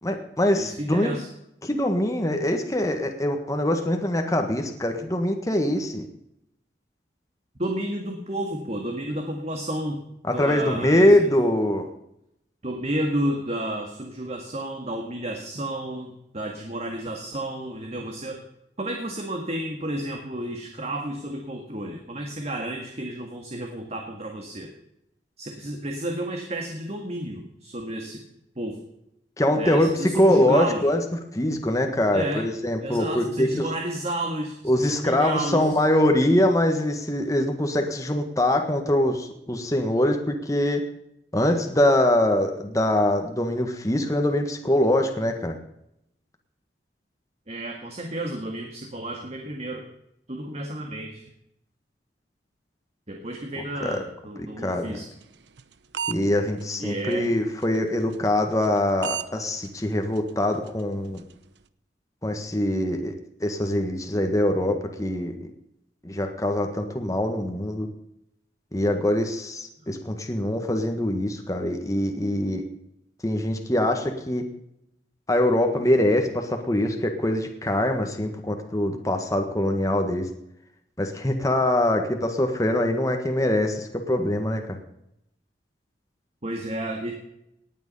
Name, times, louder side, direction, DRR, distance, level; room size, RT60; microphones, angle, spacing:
voice 1, 0.0-1.2 1.6-6.1 10.3-11.9 29.4-31.0 31.3-33.7 34.6-40.8 41.3-45.6 53.6-54.0 54.4-55.0 56.1-61.2 62.2-63.1 63.4-65.3 66.0-67.9 68.7-72.6 73.2-74.4 75.3-80.3 81.0-84.8, left 1 dB, 20° left, 4 dB, 1.6 m, -23 dB
voice 2, 0.6-1.3 7.6-10.0 10.3-11.3 12.6-18.4 18.8-24.7 25.4-28.2 28.6-28.8 29.6-30.9 32.1-32.5 32.8-35.7 47.5-49.9 50.3-51.3 53.1-55.1 56.8-57.3 69.8-69.9 86.4-87.1, right 1 dB, 40° right, 2 dB, 1.9 m, -31 dB
sound 1, 55.2-56.2 56.6-56.7 57.1-57.3 57.6-57.8 58.1-58.3 58.6-58.8 59.0-59.3 59.6-59.8 60.2-60.3 60.7-60.8 61.2-61.3, right 8 dB, 80° right, 0.8 m, -31 dB
18.5 x 9.3 x 5.5 m, 0.79 s
head